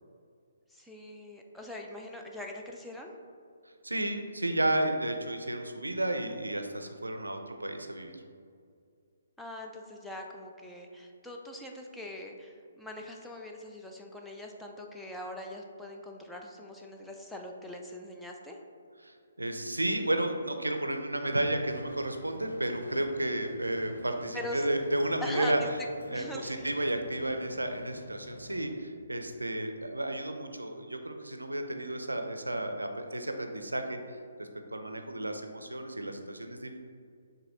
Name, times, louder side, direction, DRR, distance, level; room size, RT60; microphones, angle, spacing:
voice 1, 0.7-3.1 9.4-18.6 24.3-24.6 25.2-25.7 26.1-26.7, left 1 dB, 5° left, 0 dB, 0.3 m, -42 dB
voice 2, 3.8-8.2 19.0-25.6 26.1-36.8, right 1 dB, 80° right, 5 dB, 0.4 m, -32 dB
sound 1, 21.7-28.7, left 1 dB, 75° left, 0.5 m, -48 dB
7.0 x 2.7 x 2.6 m, 2.3 s
figure-of-eight pair, 135°, 0 cm